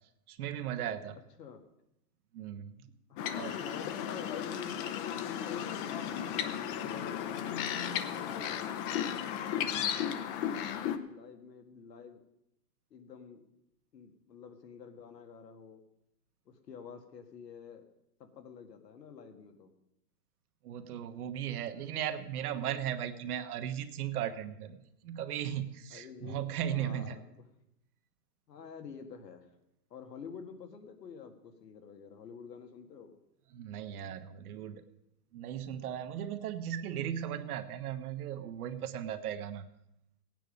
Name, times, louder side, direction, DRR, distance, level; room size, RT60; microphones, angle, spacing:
voice 1, 0.3-1.2 2.3-2.9 3.4-3.5 20.6-24.8 25.0-27.2 33.5-34.8 35.3-39.6, right 10 dB, 65° right, 8 dB, 1.3 m, -37 dB
voice 2, 3.1-5.9 6.7-10.2 10.6-12.3 12.9-13.4 13.9-15.8 16.5-17.8 18.2-19.7 25.9-26.4 26.7-27.4 28.5-29.5 29.9-33.2, left 6 dB, 85° left, 5 dB, 2.0 m, -48 dB
sound 1, 3.2-11.0, left 9 dB, 35° left, 0.8 m, -35 dB
16.0 x 9.1 x 5.2 m, 0.81 s
hypercardioid pair, 135°, 48 cm